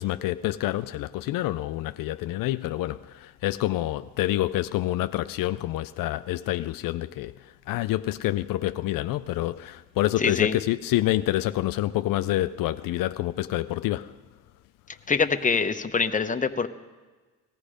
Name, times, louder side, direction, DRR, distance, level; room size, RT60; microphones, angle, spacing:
voice 1, 0.0-14.2, left 15 dB, 75° left, 0.5 m, -27 dB
voice 2, 10.2-10.5 15.1-16.7, left 5 dB, 25° left, 0.9 m, -24 dB
18.5 x 14.5 x 5.0 m
cardioid pair, 80°, 33 cm